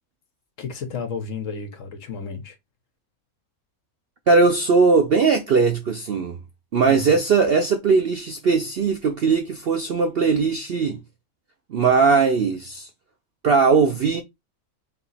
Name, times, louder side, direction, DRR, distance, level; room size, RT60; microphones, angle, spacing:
voice 1, 0.6-2.6 6.9-7.2, left 5 dB, 60° left, 1.2 m, -32 dB
voice 2, 4.3-6.4 6.7-11.0 11.7-12.9 13.4-14.2, right 4 dB, 65° right, 0.6 m, -19 dB
3.6 x 2.8 x 4.1 m
omnidirectional pair, 1.6 m